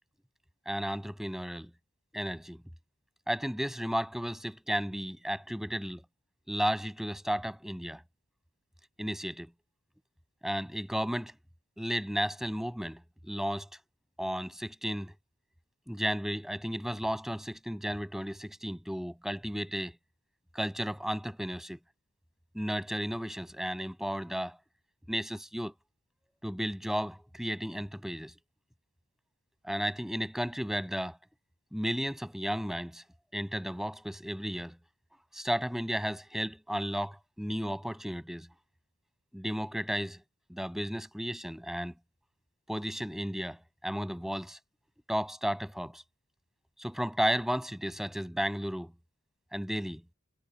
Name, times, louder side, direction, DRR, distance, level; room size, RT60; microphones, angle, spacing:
voice 1, 0.6-1.7 2.1-2.6 3.3-6.0 6.5-8.0 9.0-9.5 10.4-11.3 11.8-13.7 14.2-15.1 15.9-20.0 20.5-21.8 22.5-24.6 25.1-25.7 26.4-28.3 29.6-31.2 31.7-33.0 33.3-34.8 35.3-38.5 39.3-40.2 40.5-41.9 42.7-44.6 45.1-46.0 46.8-48.9 49.5-50.0, equal, ahead, 6.8 m, -33 dB
head